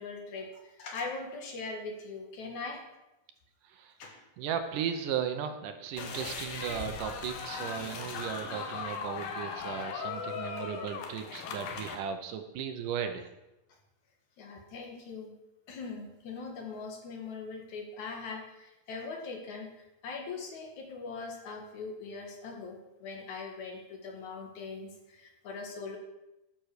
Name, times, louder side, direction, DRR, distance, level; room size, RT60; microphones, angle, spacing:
voice 1, 0.0-2.8 4.0-4.2 14.4-15.3 15.7-19.7 20.0-26.0, left 4 dB, 60° left, 2 dB, 2.7 m, -41 dB
voice 2, 3.6-3.9 4.4-13.3, right 8 dB, 75° right, 7 dB, 2.2 m, -36 dB
sound 1, 6.0-12.0, left 5 dB, 90° left, 3.1 m, -38 dB
12.0 x 6.2 x 6.6 m, 0.96 s
omnidirectional pair, 4.1 m